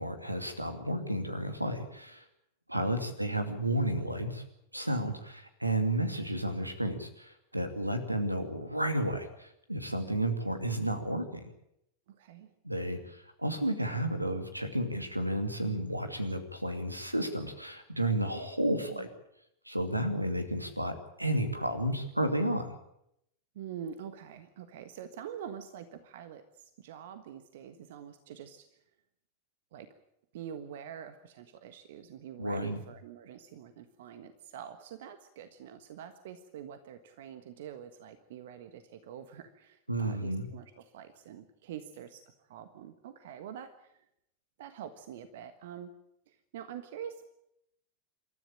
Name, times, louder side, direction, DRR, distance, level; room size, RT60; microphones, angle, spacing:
voice 1, 0.0-2.2 2.7-4.4 4.7-11.4 12.6-19.1 19.7-22.7 32.4-32.8 39.9-40.5, right 1 dB, 85° right, 8 dB, 2.5 m, -32 dB
voice 2, 2.7-3.1 12.1-12.5 18.6-19.1 23.5-28.7 29.7-29.9 30.3-44.0 44.6-45.9 46.3-47.2, right 9 dB, 55° right, 10 dB, 1.4 m, -46 dB
27.5 x 13.5 x 8.8 m, 0.78 s
figure-of-eight pair, 90°, 0 cm